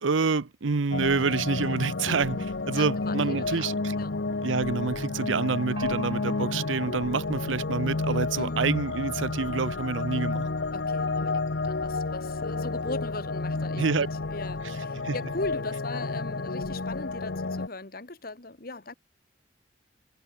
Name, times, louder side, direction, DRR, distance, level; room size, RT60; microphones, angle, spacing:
voice 1, 0.0-4.0 4.4-10.5 13.8-14.1 15.0-15.2, right 4 dB, 85° right, 0.7 m, -27 dB
sound 1, 0.9-17.7, left 3 dB, 65° left, 0.9 m, -31 dB
voice 2, 2.7-4.1 8.4-8.6 10.7-18.9, left 2 dB, 50° left, 1.6 m, -39 dB
Gong, 5.8-9.3, right 4 dB, 25° right, 5.9 m, -47 dB
head